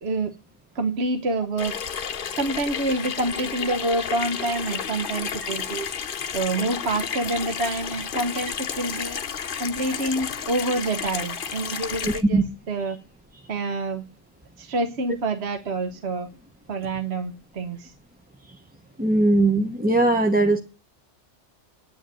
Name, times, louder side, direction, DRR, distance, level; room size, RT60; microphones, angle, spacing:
voice 1, 0.0-0.3 0.7-1.7 2.3-5.9 6.3-9.2 9.6-12.4 12.7-13.0 13.5-14.0 14.6-16.3 16.7-17.9, right 2 dB, 65° right, 7 dB, 1.3 m, -27 dB
Water tap faucet / Sink (filling or washing), 1.6-12.2, left 7 dB, 55° left, 0.9 m, -31 dB
voice 2, 12.1-12.4 19.0-20.6, right 2 dB, 10° right, 4 dB, 0.7 m, -19 dB
9.4 x 9.0 x 9.0 m, 0.36 s
omnidirectional pair, 1.2 m